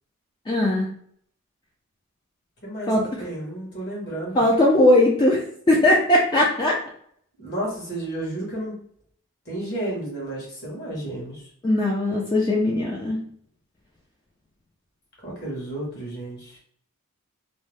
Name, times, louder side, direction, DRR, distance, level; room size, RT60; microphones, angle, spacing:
voice 1, 0.5-0.9 2.9-3.3 4.3-6.8 11.6-13.2, left 1 dB, 20° left, -3 dB, 0.4 m, -19 dB
voice 2, 2.6-4.4 7.4-8.8 9.4-11.4 15.2-16.6, right 1 dB, 50° left, -4 dB, 1.2 m, -32 dB
2.6 x 2.0 x 3.2 m, 0.63 s
head